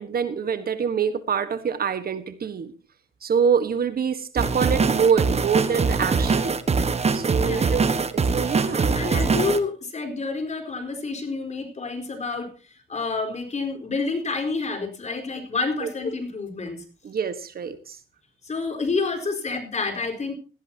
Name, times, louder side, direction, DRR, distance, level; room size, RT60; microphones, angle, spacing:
voice 1, 0.0-2.7 3.2-6.6 7.1-9.1 15.8-15.9 17.0-18.0, right 6 dB, 50° right, 12 dB, 1.4 m, -25 dB
sound 1, 4.4-9.6, right 4 dB, 30° right, 1.4 m, -22 dB
voice 2, 7.4-7.8 8.9-12.5 12.9-16.8 18.4-20.3, left 3 dB, 35° left, 6 dB, 4.4 m, -28 dB
17.5 x 14.5 x 2.9 m, 0.36 s
cardioid pair, 90°, 20 cm